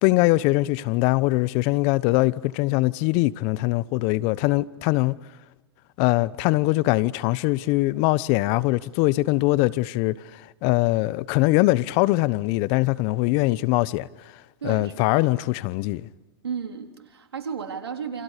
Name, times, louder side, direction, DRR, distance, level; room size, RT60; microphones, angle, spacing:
voice 1, 0.0-5.2 6.0-14.1 14.3-16.1, left 20 dB, 50° left, 1.0 m, -22 dB
voice 2, 14.6-15.3 16.4-18.2, right 6 dB, 90° right, 3.7 m, -34 dB
28.5 x 28.5 x 6.7 m
hypercardioid pair, 105°, 13 cm